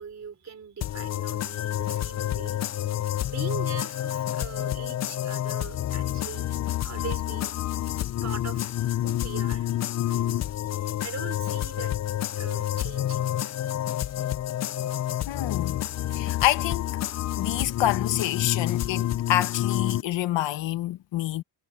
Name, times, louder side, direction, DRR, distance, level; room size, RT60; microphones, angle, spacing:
voice 1, 0.0-2.6 3.2-6.5 6.8-7.6 8.2-9.7 10.1-10.5 11.0-11.9 12.3-13.3, right 6 dB, 35° right, 4.3 m, -41 dB
sound 1, 0.8-20.0, left 12 dB, 40° left, 0.4 m, -29 dB
voice 2, 15.3-15.8 16.1-16.9 17.4-21.4, left 13 dB, 75° left, 1.5 m, -27 dB
cardioid pair, 110°, 44 cm